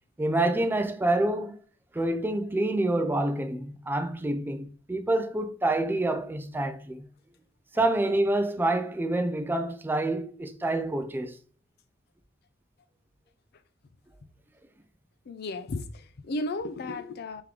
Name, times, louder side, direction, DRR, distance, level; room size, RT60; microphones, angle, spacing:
voice 1, 0.2-1.6 1.9-7.1 7.7-11.4, right 2 dB, 10° right, 0.4 m, -27 dB
voice 2, 15.3-17.4, left 2 dB, 55° left, 0.4 m, -34 dB
3.7 x 3.0 x 3.3 m
head